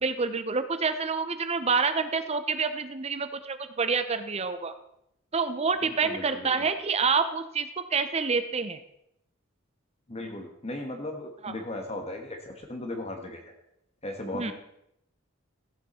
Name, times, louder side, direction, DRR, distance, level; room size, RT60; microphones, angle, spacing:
voice 1, 0.0-4.7 5.3-8.8 11.4-11.5 14.3-14.5, right 5 dB, 30° right, 10 dB, 0.7 m, -27 dB
voice 2, 5.8-6.7 10.1-13.5 14.0-14.5, left 1 dB, 30° left, 4 dB, 1.3 m, -37 dB
14.5 x 8.0 x 4.3 m, 0.78 s
head